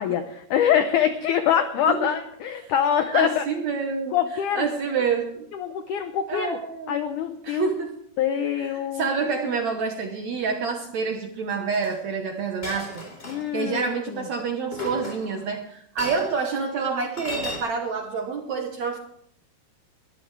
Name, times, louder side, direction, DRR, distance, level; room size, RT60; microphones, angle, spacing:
voice 1, 0.0-3.4 4.1-4.6 5.5-6.6 6.9-7.7 8.2-9.1 13.3-13.9, left 9 dB, 85° left, 9 dB, 1.8 m, -24 dB
voice 2, 3.1-4.2 4.5-5.5 6.3-7.0 7.4-8.0 8.7-13.0 13.5-19.0, right 5 dB, 70° right, 4 dB, 1.8 m, -27 dB
Chink clink, 11.7-11.9 12.6-13.6 14.7-15.5 16.0-16.3 17.2-17.6, left 1 dB, 15° left, 3.7 m, -34 dB
21.5 x 14.0 x 3.3 m, 0.70 s
omnidirectional pair, 4.6 m